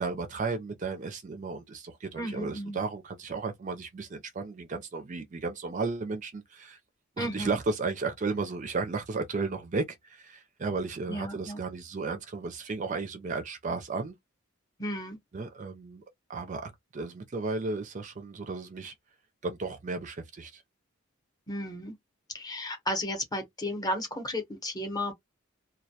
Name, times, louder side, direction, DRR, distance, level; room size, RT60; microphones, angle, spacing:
voice 1, 0.0-6.8 7.2-14.2 15.3-16.0 16.3-18.9 19.4-20.6, right 4 dB, 35° right, 0.4 m, -34 dB
voice 2, 2.2-2.8 7.2-7.5 11.1-11.6 14.8-15.2 21.5-22.0 22.3-25.1, left 1 dB, 20° left, 0.7 m, -33 dB
2.2 x 2.1 x 2.7 m
head